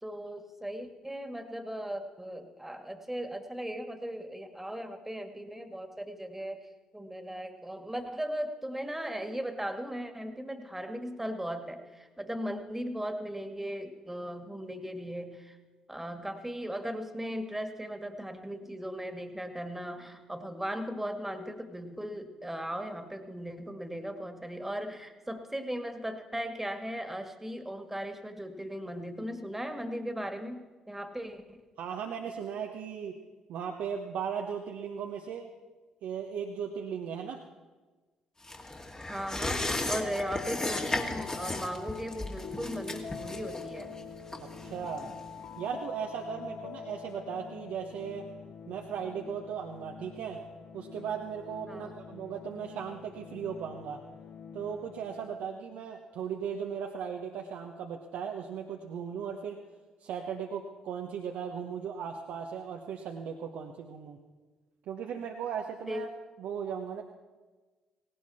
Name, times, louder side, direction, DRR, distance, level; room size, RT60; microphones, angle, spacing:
voice 1, 0.0-6.6 6.9-15.6 15.9-31.6 39.1-44.0 51.7-51.9 65.9-66.1, equal, 10° right, 7 dB, 2.2 m, -37 dB
voice 2, 31.8-33.2 33.5-35.5 36.0-37.4 44.6-45.1 45.6-48.3 48.7-50.4 50.7-54.0 54.5-59.6 60.0-64.2 64.9-66.1 66.4-67.0, right 7 dB, 70° right, 2 dB, 1.1 m, -37 dB
sound 1, 38.4-45.5 45.8-45.9, left 2 dB, 25° left, 2.3 m, -36 dB
sound 2, 39.9-55.6, left 6 dB, 60° left, 1.3 m, -45 dB
18.0 x 18.0 x 4.3 m, 1.3 s
hypercardioid pair, 45°, 3 cm